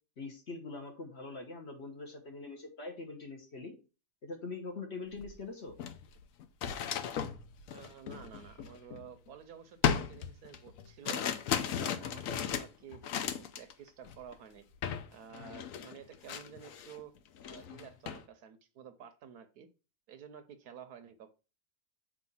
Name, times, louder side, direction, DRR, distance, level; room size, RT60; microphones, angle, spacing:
voice 1, 0.2-3.7 4.2-5.8, left 3 dB, 45° left, 3 dB, 1.3 m, -43 dB
sound 1, 5.2-5.3 5.7-9.3 9.8-13.7 14.0-14.3 14.8-15.1 15.3-17.0 17.4-18.2, left 8 dB, 65° left, 0.9 m, -36 dB
voice 2, 7.7-11.3 11.7-14.7 15.1-17.1 17.5-19.7 20.1-21.3, right 8 dB, 70° right, 10 dB, 1.1 m, -51 dB
7.6 x 2.7 x 5.4 m, 0.32 s
omnidirectional pair, 1.8 m